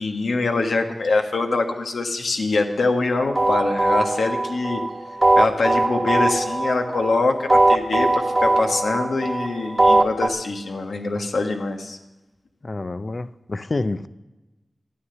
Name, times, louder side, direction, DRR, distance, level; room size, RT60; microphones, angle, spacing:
voice 1, 0.0-4.8 5.4-12.0, left 3 dB, 90° left, 1.3 m, -24 dB
sound 1, 3.2-10.3, right 2 dB, 35° right, 1.4 m, -20 dB
voice 2, 12.6-14.1, left 2 dB, 50° left, 0.6 m, -28 dB
12.5 x 9.7 x 6.7 m
cardioid pair, 50°, 0 cm